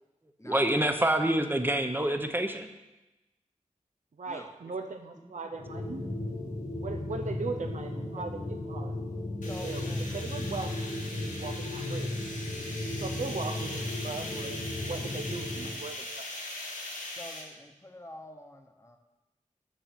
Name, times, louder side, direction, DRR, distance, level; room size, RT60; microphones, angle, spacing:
voice 1, 0.4-2.7 6.1-6.2 6.4-6.5 8.8-8.9, right 1 dB, 15° right, 6 dB, 0.8 m, -27 dB
voice 2, 4.2-6.1 6.7-8.9 9.6-9.8 10.1-12.3 13.0-16.3, right 4 dB, 65° right, 5 dB, 0.6 m, -39 dB
sound 1, 5.5-15.8, left 1 dB, 70° left, 1.7 m, -35 dB
sound 2, 9.4-17.4, left 1 dB, 85° left, 1.9 m, -40 dB
voice 3, 9.5-10.2 17.1-19.0, left 1 dB, 20° left, 4 dB, 1.0 m, -47 dB
7.1 x 6.6 x 5.9 m, 1.0 s
wide cardioid pair, 75°, 14 cm